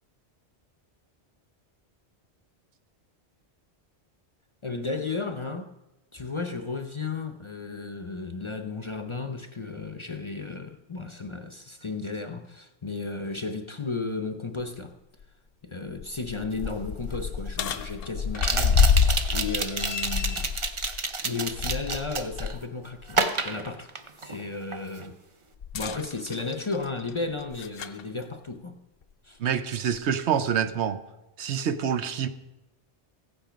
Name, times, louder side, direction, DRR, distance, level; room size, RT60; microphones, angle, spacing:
voice 1, 4.6-5.7 6.1-14.9 15.6-23.9 24.2-25.2 25.7-28.8 29.2-29.4, left 3 dB, 30° left, 0.6 m, -34 dB
sound 1, 14.6-14.7 15.2-15.3 15.9-22.6 23.0-23.2 25.6-28.0 29.0-29.1 29.9-30.0, left 6 dB, 60° left, 0.8 m, -28 dB
sound 2, 16.7-16.8 18.3-22.6 23.1-24.4 24.7-25.1, right 4 dB, 30° right, 0.7 m, -29 dB
voice 2, 29.4-31.0 31.4-32.3, right 8 dB, 80° right, 1.1 m, -26 dB
15.5 x 8.7 x 5.1 m
omnidirectional pair, 1.1 m